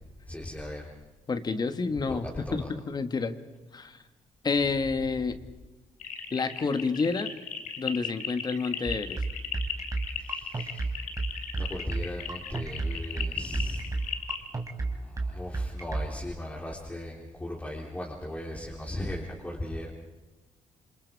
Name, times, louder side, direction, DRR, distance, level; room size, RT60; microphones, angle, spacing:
voice 1, 0.3-0.9 2.1-2.7 10.3-10.9 11.6-13.9 15.0-19.9, left 1 dB, 10° left, -4 dB, 3.8 m, -37 dB
voice 2, 1.3-2.3 2.5-3.4 3.7-4.0 4.4-5.4 6.3-7.3 7.8-9.2, left 4 dB, 35° left, 10 dB, 1.6 m, -29 dB
sound 1, 6.0-14.5, left 8 dB, 80° left, 2.6 m, -36 dB
sound 2, 8.9-16.1, right 3 dB, 25° right, 3.1 m, -30 dB
28.5 x 26.5 x 4.8 m, 1.1 s
cardioid pair, 125°, 13 cm